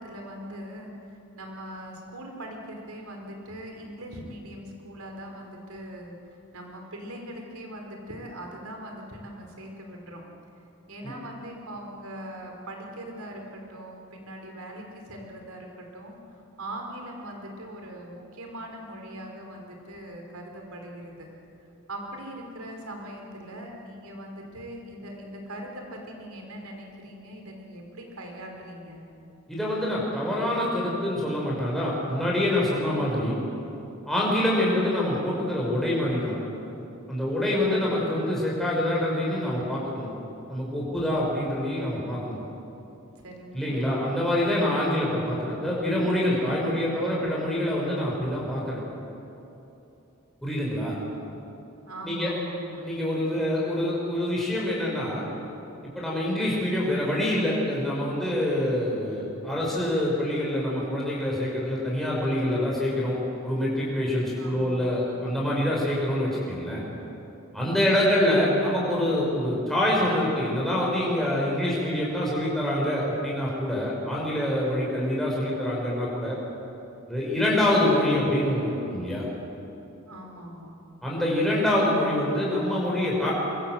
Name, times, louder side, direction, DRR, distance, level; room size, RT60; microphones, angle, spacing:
voice 1, 0.0-10.2 10.9-21.3 21.9-29.0 43.2-43.8 51.8-52.9 64.4-64.9 67.9-68.3 80.1-80.7, right 1 dB, 85° right, 2 dB, 4.9 m, -41 dB
voice 2, 29.5-33.4 34.1-36.3 37.1-40.1 40.5-42.4 43.5-48.8 50.4-51.0 52.0-52.3 52.8-55.2 55.9-63.2 63.4-66.8 67.5-76.4 77.1-79.3 81.0-83.3, left 1 dB, ahead, -5 dB, 5.5 m, -26 dB
24.0 x 23.5 x 7.8 m, 2.9 s
head